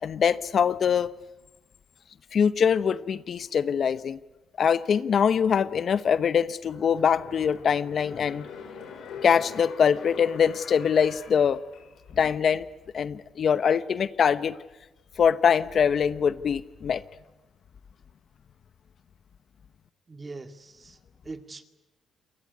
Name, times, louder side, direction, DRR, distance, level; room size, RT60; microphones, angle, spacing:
voice 1, 0.0-1.1 2.3-4.2 4.6-8.5 9.2-11.6 12.2-12.7 12.9-14.6 15.2-17.0, left 7 dB, 55° left, 15 dB, 0.8 m, -23 dB
sound 1, 6.6-12.2 12.6-12.7, left 6 dB, 80° left, 6.9 m, -44 dB
voice 2, 20.1-21.0 21.2-21.6, right 3 dB, 25° right, 8 dB, 2.1 m, -41 dB
27.5 x 20.5 x 9.6 m, 1.1 s
cardioid pair, 90°, 0 cm